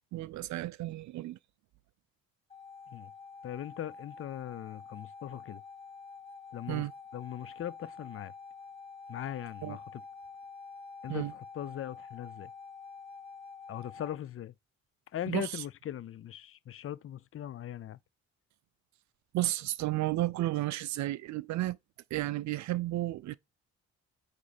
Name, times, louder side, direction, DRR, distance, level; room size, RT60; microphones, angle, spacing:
voice 1, 0.1-1.4 6.7-6.9 9.6-9.8 11.1-11.3 15.3-15.6 19.3-21.8 22.1-23.4, right 16 dB, 70° right, 0.4 m, -32 dB
sound 1, 2.5-14.2, left 4 dB, 20° left, 1.6 m, -48 dB
voice 2, 3.4-5.6 6.5-6.9 7.1-8.3 9.1-10.0 11.0-12.5 13.7-14.5 15.1-18.0, left 11 dB, 45° left, 0.5 m, -40 dB
8.5 x 3.2 x 4.1 m
cardioid pair, 90°, 30 cm